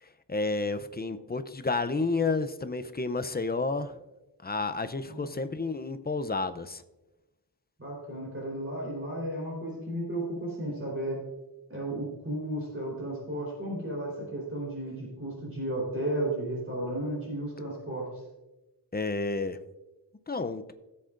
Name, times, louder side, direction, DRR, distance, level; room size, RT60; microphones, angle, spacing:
voice 1, 0.0-4.0 4.4-6.8 18.9-19.6 20.3-20.7, left 3 dB, 25° left, 10 dB, 0.5 m, -31 dB
voice 2, 7.8-11.2 11.7-18.1, right 1 dB, 30° right, -4 dB, 3.9 m, -34 dB
16.5 x 7.8 x 2.5 m, 1.0 s
wide cardioid pair, 65°, 43 cm